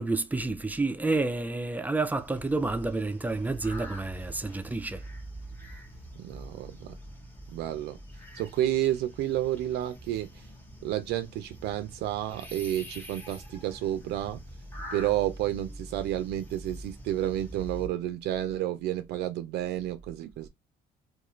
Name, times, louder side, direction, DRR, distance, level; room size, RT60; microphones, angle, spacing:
voice 1, 0.0-5.0, right 3 dB, 10° right, 0.4 m, -29 dB
sound 1, 2.1-17.9, right 1 dB, 10° left, 0.9 m, -45 dB
voice 2, 6.2-6.9 7.5-8.0 8.3-10.5 10.8-14.4 14.9-20.5, right 13 dB, 80° right, 0.4 m, -30 dB
2.5 x 2.4 x 3.0 m
cardioid pair, 110°, 17 cm